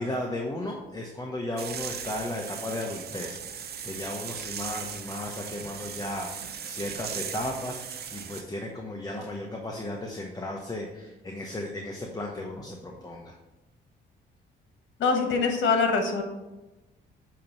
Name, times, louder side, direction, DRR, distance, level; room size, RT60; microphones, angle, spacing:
voice 1, 0.0-7.8 8.1-13.4, left 1 dB, 20° left, 0 dB, 0.9 m, -35 dB
sound 1, 1.6-8.4, right 7 dB, 55° right, 0.7 m, -38 dB
voice 2, 15.0-16.2, left 4 dB, 70° left, 4 dB, 1.3 m, -23 dB
8.3 x 3.0 x 5.7 m, 1.1 s
cardioid pair, 90°, 20 cm